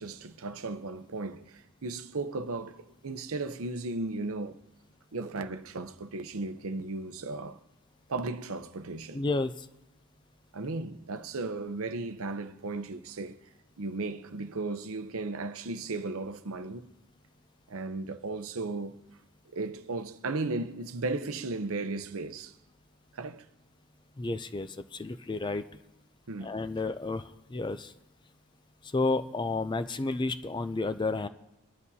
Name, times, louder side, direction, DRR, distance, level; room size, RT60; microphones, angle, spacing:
voice 1, 0.0-4.6 5.1-7.6 8.1-9.2 10.5-13.4 13.8-16.9 17.7-19.0 19.5-22.6 23.1-23.5 26.3-26.5, right 3 dB, 70° right, 0.7 m, -35 dB
voice 2, 9.1-9.7 24.2-25.6 26.4-27.9 28.8-31.3, left 3 dB, 20° left, 0.4 m, -31 dB
24.5 x 11.0 x 2.8 m
head